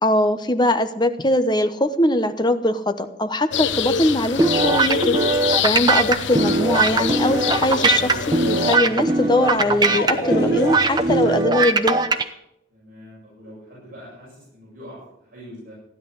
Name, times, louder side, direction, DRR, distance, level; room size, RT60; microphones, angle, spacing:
voice 1, 0.0-5.2 5.6-12.0, left 1 dB, 25° left, 9 dB, 1.0 m, -21 dB
sound 1, 3.5-8.8, left 7 dB, 90° left, 0.7 m, -26 dB
sound 2, 4.4-12.2, right 3 dB, 25° right, 0.9 m, -20 dB
sound 3, 6.3-11.5, left 1 dB, 65° left, 2.6 m, -33 dB
voice 2, 12.7-15.7, equal, 50° right, -6 dB, 7.3 m, -43 dB
15.5 x 11.0 x 8.0 m, 0.81 s
head